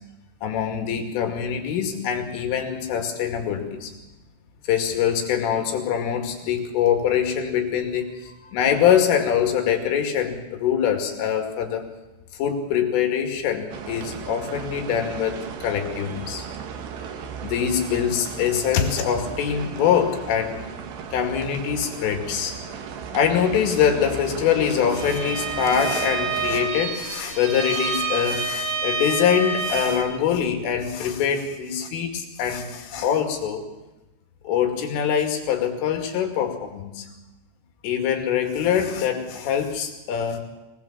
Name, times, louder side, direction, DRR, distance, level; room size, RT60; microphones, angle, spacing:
voice 1, 0.4-3.9 4.7-11.9 12.4-16.5 17.2-20.6 21.1-22.6 23.1-33.6 34.4-37.1 37.8-40.4, left 8 dB, 75° left, 4 dB, 5.0 m, -24 dB
sound 1, 13.7-26.7, right 7 dB, 65° right, 3.4 m, -36 dB
Bowed string instrument, 24.9-30.2, right 4 dB, 45° right, 4.4 m, -28 dB
25.0 x 19.0 x 7.5 m, 1.0 s
omnidirectional pair, 5.8 m